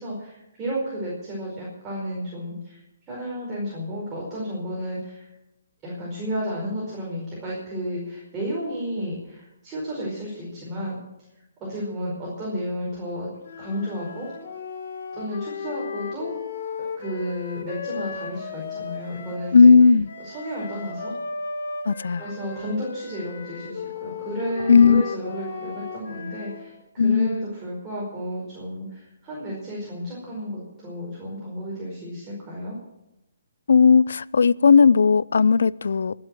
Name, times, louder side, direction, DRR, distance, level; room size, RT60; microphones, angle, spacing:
voice 1, 0.0-2.8 3.1-5.3 5.8-11.0 11.6-13.3 13.6-14.3 15.1-16.3 17.0-19.7 20.2-21.1 22.1-32.8, equal, 20° right, -5 dB, 5.1 m, -32 dB
sound 1, 13.4-19.5 20.0-26.7, left 5 dB, 55° left, 3.0 m, -35 dB
voice 2, 19.5-20.1 21.9-22.2 24.7-25.0 27.0-27.3 33.7-36.1, left 5 dB, 75° left, 21 dB, 0.5 m, -15 dB
21.0 x 7.7 x 7.7 m, 0.92 s
hypercardioid pair, 150°, 0 cm